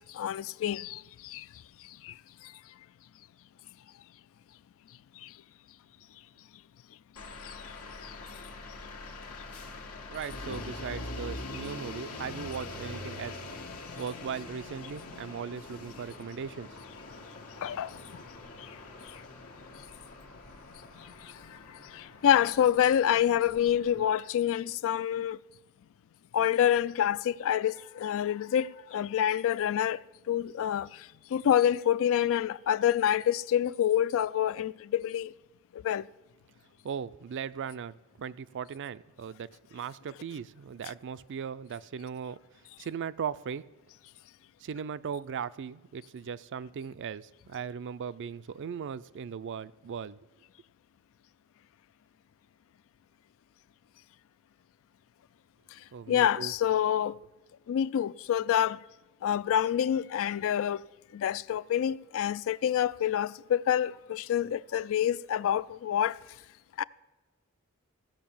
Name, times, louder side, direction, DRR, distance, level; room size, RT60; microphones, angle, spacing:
voice 1, 0.0-1.5 1.8-2.1 2.4-2.5 5.2-5.3 7.4-7.6 8.0-8.1 17.6-18.0 18.6-18.7 21.0-25.4 26.3-30.0 30.3-35.3 35.7-36.1 56.1-57.2 57.7-58.8 59.2-60.9 61.1-66.2 66.8-66.9, left 10 dB, 65° left, 0.3 m, -27 dB
sound 1, 7.2-24.1, left 2 dB, 85° left, 1.5 m, -44 dB
voice 2, 10.1-13.4 14.0-16.7 36.8-42.4 42.8-43.7 44.6-50.2 55.9-56.5, right 7 dB, 55° right, 0.4 m, -38 dB
16.0 x 5.6 x 7.1 m
head